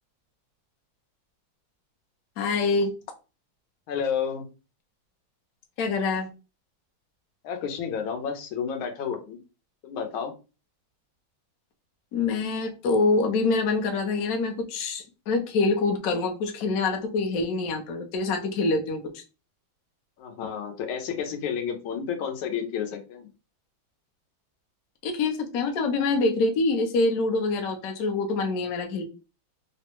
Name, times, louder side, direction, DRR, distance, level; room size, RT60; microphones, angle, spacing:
voice 1, 2.4-2.9 5.8-6.3 12.1-19.0 25.0-29.0, left 3 dB, 70° left, 3 dB, 0.8 m, -25 dB
voice 2, 3.9-4.5 7.4-9.4 9.8-10.3 20.2-23.3, left 7 dB, 90° left, 4 dB, 1.5 m, -31 dB
3.5 x 2.1 x 2.9 m, 0.31 s
omnidirectional pair, 2.2 m